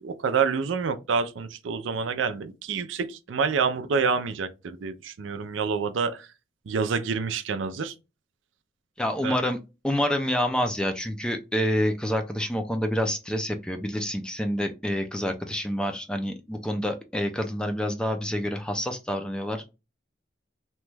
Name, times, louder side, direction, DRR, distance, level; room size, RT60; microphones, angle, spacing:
voice 1, 0.0-6.2 6.7-7.9 9.2-9.4, right 5 dB, 85° right, 0.4 m, -27 dB
voice 2, 9.0-9.6 9.8-19.7, equal, 5° left, 0.3 m, -27 dB
3.0 x 2.2 x 3.2 m
head